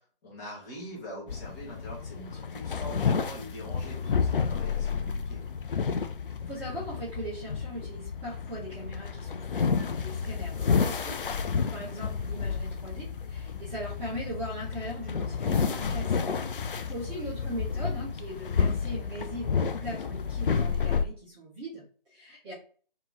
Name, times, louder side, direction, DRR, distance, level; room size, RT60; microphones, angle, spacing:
voice 1, 0.0-5.4 17.1-17.5, equal, 20° left, -6 dB, 1.2 m, -44 dB
sound 1, 1.3-21.0, left 6 dB, 65° left, 0.5 m, -30 dB
voice 2, 6.5-16.2 16.6-22.5, right 1 dB, 10° right, -11 dB, 0.9 m, -40 dB
2.9 x 2.9 x 3.6 m, 0.43 s
figure-of-eight pair, 150°, 29 cm